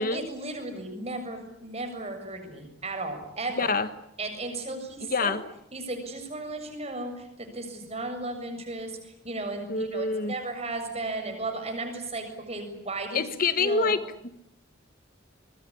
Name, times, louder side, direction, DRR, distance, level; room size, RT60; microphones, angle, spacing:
voice 1, 0.0-3.7 4.2-5.3 5.7-13.9, right 2 dB, 35° right, 5 dB, 7.3 m, -35 dB
voice 2, 3.6-3.9 5.0-5.4 9.7-10.3 13.1-14.3, left 4 dB, 50° left, 11 dB, 1.4 m, -26 dB
25.5 x 21.5 x 10.0 m, 0.76 s
head